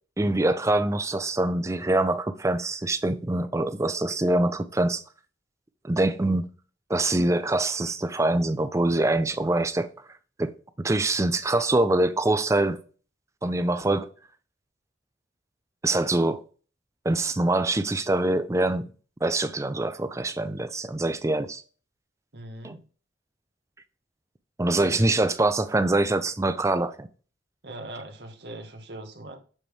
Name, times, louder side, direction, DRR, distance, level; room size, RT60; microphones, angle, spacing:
voice 1, 0.2-5.0 5.8-6.5 6.9-9.9 10.4-12.8 13.4-14.1 15.8-16.4 17.0-18.8 19.2-21.6 22.6-22.8 24.6-27.1, right 2 dB, 15° right, 0.4 m, -24 dB
voice 2, 22.3-22.8 24.8-25.1 27.6-29.4, right 1 dB, 60° right, 1.3 m, -41 dB
7.6 x 3.4 x 4.6 m
head